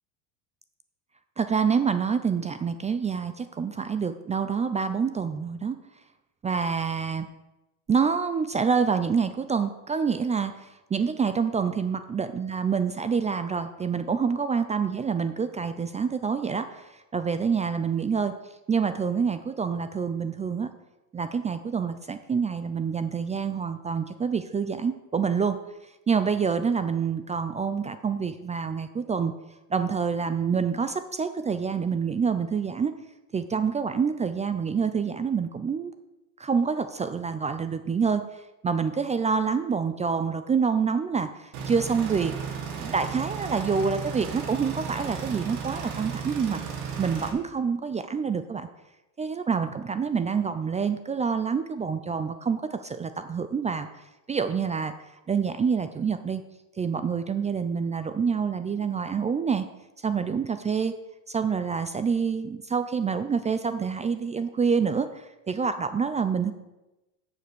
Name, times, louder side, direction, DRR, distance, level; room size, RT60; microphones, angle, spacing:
voice 1, 1.4-5.8 6.4-7.3 7.9-18.3 18.7-20.7 21.1-25.6 26.1-29.3 29.7-32.9 33.3-35.9 36.4-38.2 38.6-42.4 42.8-46.6 47.0-48.7 49.2-53.9 54.3-54.9 55.3-56.4 56.8-59.6 60.0-60.9 61.3-66.5, right 6 dB, 15° right, 10 dB, 0.4 m, -27 dB
sound 1, 41.5-47.3, right 6 dB, 90° right, 1.8 m, -34 dB
7.1 x 6.8 x 6.1 m, 1.0 s
supercardioid pair, 100°, 44 cm